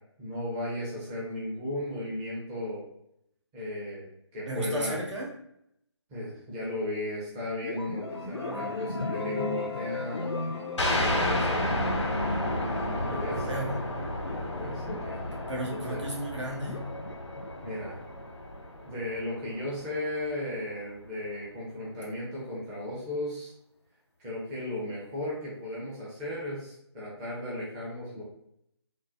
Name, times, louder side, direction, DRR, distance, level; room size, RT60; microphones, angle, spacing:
voice 1, 0.2-2.9 3.5-4.1 4.3-5.0 6.1-10.4 11.0-11.7 13.1-13.5 14.3-15.2 15.9-16.0 17.6-18.0 18.8-23.5 24.2-28.2, left 1 dB, 10° right, -7 dB, 0.5 m, -35 dB
voice 2, 4.5-5.3 8.3-8.8 13.0-13.9 15.5-16.9, right 1 dB, 85° right, -3 dB, 1.2 m, -35 dB
sound 1, 7.6-19.3, left 5 dB, 70° left, 0.4 m, -40 dB
sound 2, 8.1-13.9, equal, 60° right, 1.1 m, -37 dB
sound 3, 10.8-20.0, left 1 dB, 90° left, 0.9 m, -32 dB
3.7 x 2.1 x 2.7 m, 0.76 s
figure-of-eight pair, 155°, 15 cm